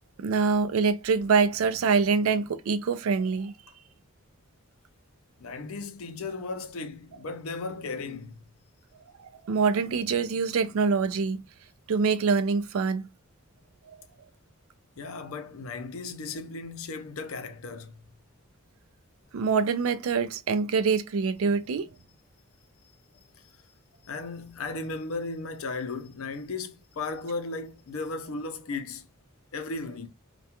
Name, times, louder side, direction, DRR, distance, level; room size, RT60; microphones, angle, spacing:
voice 1, 0.2-3.5 9.2-11.5 11.9-13.1 19.3-21.9, right 5 dB, 75° right, 0.4 m, -25 dB
voice 2, 5.4-8.4 15.0-17.9 23.4-23.5 24.0-29.0 29.5-30.1, left 3 dB, 75° left, 0.5 m, -35 dB
2.2 x 2.2 x 2.8 m
head